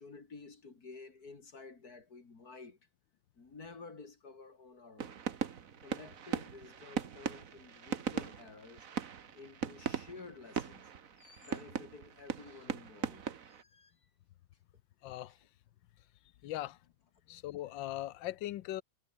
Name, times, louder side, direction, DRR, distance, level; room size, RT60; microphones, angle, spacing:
voice 1, 0.0-2.8 3.4-5.3 5.8-8.9 9.3-10.8 11.2-13.9 16.5-16.6, left 4 dB, 50° left, 3.3 m, -52 dB
sound 1, 5.0-13.6, right 7 dB, 50° right, 1.5 m, -40 dB
voice 2, 15.0-15.4 16.4-16.8 17.3-18.8, left 14 dB, 80° left, 1.5 m, -39 dB
omnidirectional pair, 2.1 m